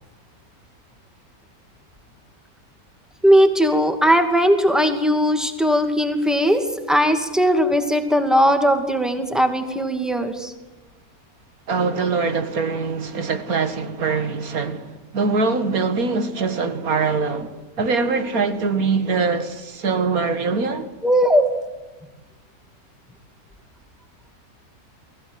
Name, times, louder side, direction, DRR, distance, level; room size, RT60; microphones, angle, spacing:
voice 1, 3.2-10.5 21.0-21.5, equal, ahead, 2.3 m, -18 dB
voice 2, 11.7-20.9, right 4 dB, 70° right, 2.2 m, -23 dB
23.5 x 16.0 x 9.5 m
omnidirectional pair, 1.6 m